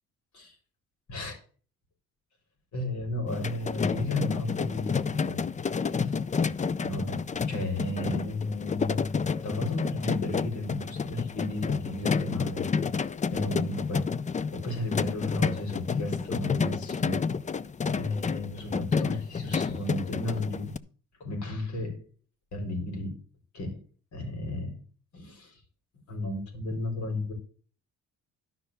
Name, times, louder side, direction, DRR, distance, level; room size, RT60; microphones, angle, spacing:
voice 1, 2.7-5.5 6.0-6.1 6.8-7.2 7.5-12.7 13.3-14.1 14.5-17.4 17.9-20.7 21.2-22.0 22.5-23.2 23.5-23.8 24.1-24.8 25.1-25.6 26.1-27.3, left 2 dB, 70° left, 4.4 m, -33 dB
sound 1, 3.3-20.8, left 5 dB, 25° left, 0.5 m, -30 dB
11.5 x 5.8 x 6.7 m
cardioid pair, 90°, 30 cm